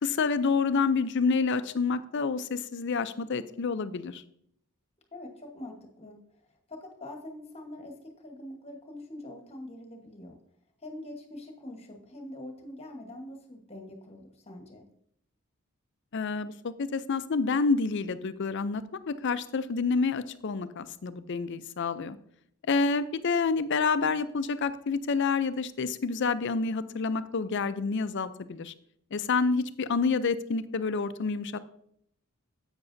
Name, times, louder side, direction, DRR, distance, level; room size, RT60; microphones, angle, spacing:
voice 1, 0.0-4.2 16.1-22.2 22.6-28.7 29.1-31.6, left 4 dB, 55° left, 13 dB, 0.5 m, -28 dB
voice 2, 5.1-10.4 10.8-14.8, left 1 dB, 30° left, 3 dB, 1.2 m, -44 dB
10.5 x 8.0 x 2.6 m, 0.69 s
head